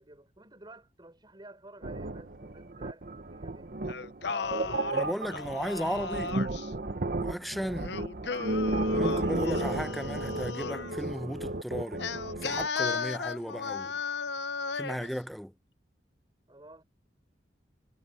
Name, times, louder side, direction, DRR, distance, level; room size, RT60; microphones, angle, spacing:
voice 1, 0.0-3.8 16.5-16.8, right 2 dB, 25° right, 4.3 m, -52 dB
sound 1, 1.8-12.7, right 2 dB, 55° right, 1.0 m, -33 dB
Singing, 3.9-6.7 7.8-11.0 12.0-15.1, left 5 dB, 70° left, 0.8 m, -35 dB
voice 2, 4.9-6.4 7.2-8.0 8.9-12.1 12.4-14.0 14.7-15.5, equal, ahead, 0.7 m, -35 dB
head